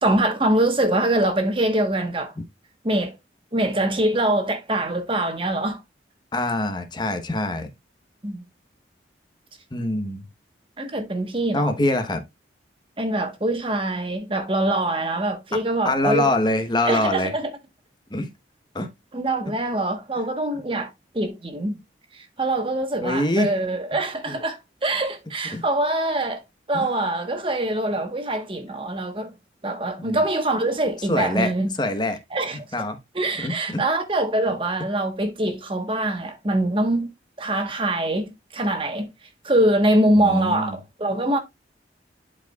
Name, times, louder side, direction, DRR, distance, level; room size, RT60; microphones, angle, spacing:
voice 1, 0.0-2.3 2.8-3.1 3.5-5.8 8.2-8.5 10.8-11.7 13.0-16.3 16.9-17.5 19.1-20.9 21.1-21.8 22.1-26.4 26.7-29.3 29.6-31.7 32.3-32.6 33.1-37.1 37.4-39.1 39.4-41.4, right 1 dB, 30° right, 1.2 m, -24 dB
voice 2, 6.3-7.7 9.7-10.2 11.5-12.2 15.8-17.3 18.1-18.3 18.7-18.9 23.0-23.5 24.3-24.4 25.5-25.6 26.7-26.9 30.0-30.2 31.1-32.2 32.7-33.0 33.4-33.8 40.2-40.8, left 1 dB, 25° left, 1.1 m, -24 dB
11.0 x 4.7 x 2.3 m
head